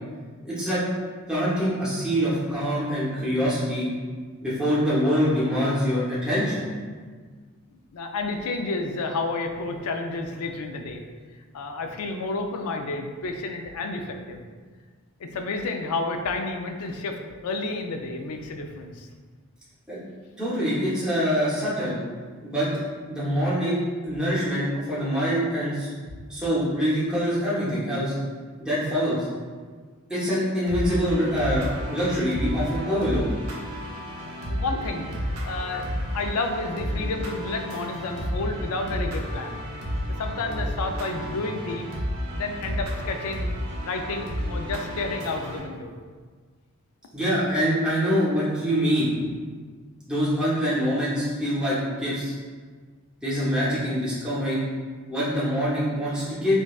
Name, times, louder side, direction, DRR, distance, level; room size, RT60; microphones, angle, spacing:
voice 1, 0.4-0.8 1.3-3.9 4.4-6.7 19.9-20.0 20.4-22.0 22.4-22.7 23.0-25.9 26.3-28.1 28.6-29.3 30.1-33.2 47.1-49.1 50.1-52.3 53.2-54.6 55.1-56.6, equal, 5° right, -10 dB, 0.8 m, -25 dB
voice 2, 7.7-11.0 11.5-14.4 15.2-19.1 34.2-39.6 40.2-41.9 42.3-43.5 43.8-45.9, left 3 dB, 90° left, 4 dB, 0.4 m, -31 dB
sound 1, 30.7-45.6, equal, 85° right, 0.7 m, -32 dB
5.1 x 2.2 x 2.3 m, 1.5 s
head